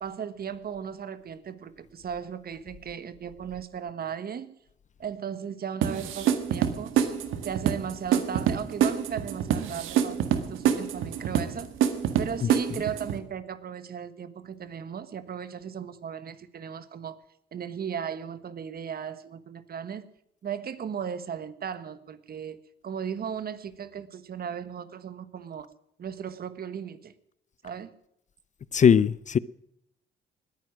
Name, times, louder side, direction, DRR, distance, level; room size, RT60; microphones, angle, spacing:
voice 1, 0.0-4.5 5.0-7.1 7.4-11.7 12.2-17.2 17.5-20.0 20.4-25.7 26.0-27.1 27.6-27.9, right 8 dB, 50° right, 1.4 m, -36 dB
sound 1, 5.8-13.2, right 9 dB, 85° right, 1.7 m, -26 dB
voice 2, 28.7-29.4, left 7 dB, 40° left, 0.5 m, -19 dB
20.0 x 9.6 x 6.2 m
cardioid pair, 90°, 20 cm